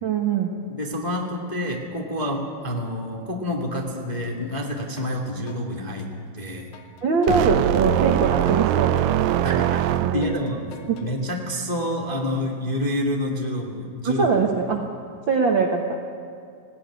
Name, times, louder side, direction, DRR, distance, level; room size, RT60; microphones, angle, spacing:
voice 1, 0.0-0.5 7.0-9.0 10.0-10.3 10.9-11.0 14.0-14.9 15.3-16.1, right 4 dB, 60° right, 2 dB, 1.2 m, -22 dB
voice 2, 0.7-6.7 8.1-8.2 9.4-9.8 10.1-10.6 11.0-14.3, left 1 dB, 20° left, 1 dB, 1.1 m, -28 dB
sound 1, 4.2-5.1 5.5-11.1, left 1 dB, 70° left, 2.9 m, -42 dB
sound 2, 7.3-10.5, right 12 dB, 80° right, 2.2 m, -22 dB
18.5 x 17.0 x 9.7 m, 2.4 s
omnidirectional pair, 4.2 m